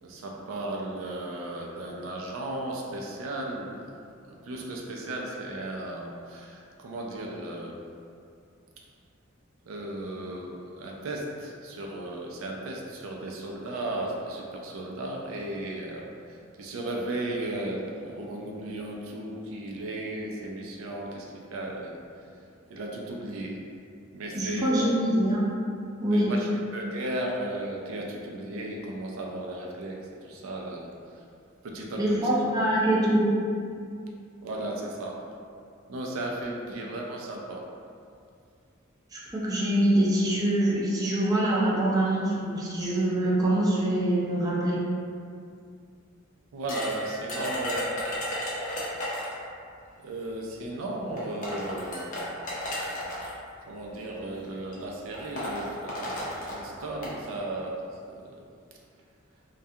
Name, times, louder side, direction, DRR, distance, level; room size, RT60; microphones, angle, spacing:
voice 1, 0.0-3.9 4.3-7.8 9.7-22.4 22.7-23.6 24.1-24.7 26.1-31.2 31.6-32.2 34.4-35.2 35.9-37.7 46.5-48.0 50.0-52.3 53.7-58.5, right 1 dB, 85° right, -1 dB, 0.4 m, -35 dB
voice 2, 24.3-25.4 26.0-26.3 32.0-33.3 39.1-44.8, right 1 dB, 20° right, -7 dB, 0.4 m, -24 dB
sound 1, 46.7-49.4 50.5-50.6 51.2-53.3 54.2-54.4 54.7-54.8 55.1-57.2, left 1 dB, 40° left, 0.5 m, -34 dB
2.3 x 2.2 x 2.7 m, 2.3 s
head